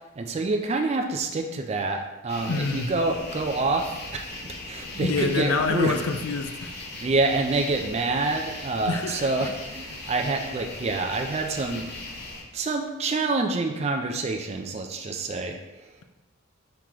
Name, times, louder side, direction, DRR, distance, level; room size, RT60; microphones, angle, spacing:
voice 1, 0.2-4.2 4.7-5.9 7.0-11.9 12.5-15.9, right 3 dB, 30° right, 4 dB, 0.3 m, -27 dB
sound 1, 2.3-12.4, left 2 dB, 50° left, 0.7 m, -39 dB
voice 2, 2.5-2.9 5.0-6.7 8.8-9.3, left 4 dB, 75° left, 7 dB, 0.4 m, -26 dB
4.6 x 2.9 x 3.7 m, 1.1 s
head